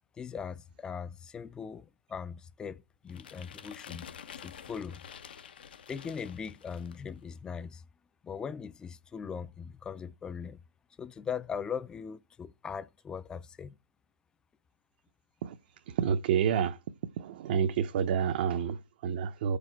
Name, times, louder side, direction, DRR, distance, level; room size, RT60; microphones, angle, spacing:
voice 1, 0.1-4.1 4.3-5.1 5.9-7.8 8.2-10.6 11.0-13.8, left 6 dB, 15° left, 0.4 m, -40 dB
sound 1, 3.1-7.1, left 8 dB, 75° left, 0.8 m, -48 dB
voice 2, 15.9-16.8 17.2-19.6, right 7 dB, 60° right, 0.7 m, -29 dB
13.5 x 5.0 x 4.5 m
hypercardioid pair, 125°, 5 cm